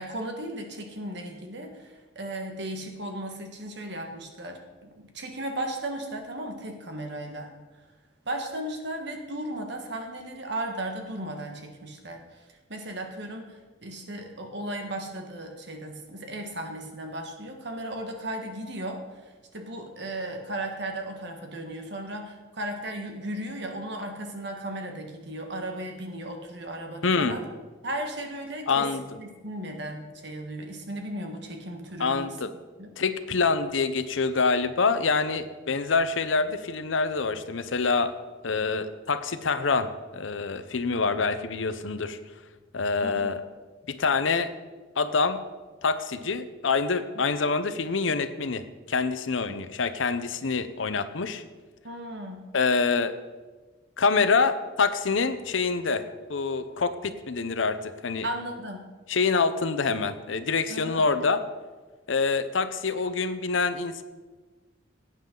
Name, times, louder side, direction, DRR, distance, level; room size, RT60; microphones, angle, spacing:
voice 1, 0.0-7.5 8.2-27.4 27.8-32.4 32.8-33.0 43.0-43.4 47.1-47.2 51.8-52.4 58.2-58.9 60.7-61.0, right 1 dB, 60° right, 3 dB, 1.6 m, -36 dB
voice 2, 27.0-27.4 28.7-29.0 32.0-32.5 33.0-38.1 38.4-42.2 42.7-43.4 43.9-44.5 45.0-45.4 45.8-51.4 52.5-53.1 54.0-58.3 59.1-61.4 62.1-64.0, left 4 dB, 80° left, 11 dB, 0.7 m, -26 dB
17.5 x 9.0 x 3.9 m, 1.3 s
head